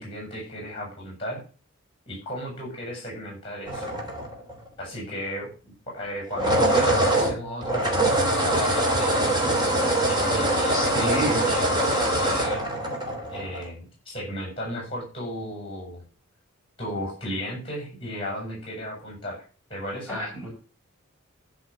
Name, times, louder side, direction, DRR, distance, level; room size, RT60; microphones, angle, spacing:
voice 1, 0.0-1.4 2.1-3.9 4.8-9.5 10.0-12.6 13.3-16.0 16.8-19.4 19.7-20.2, equal, 25° left, -2 dB, 7.3 m, -35 dB
sound 1, 3.7-4.7 6.2-13.7, right 1 dB, 20° right, 3.0 m, -23 dB
voice 2, 10.7-11.5 20.1-20.5, right 1 dB, ahead, -7 dB, 6.0 m, -29 dB
12.5 x 5.6 x 7.4 m, 0.37 s
head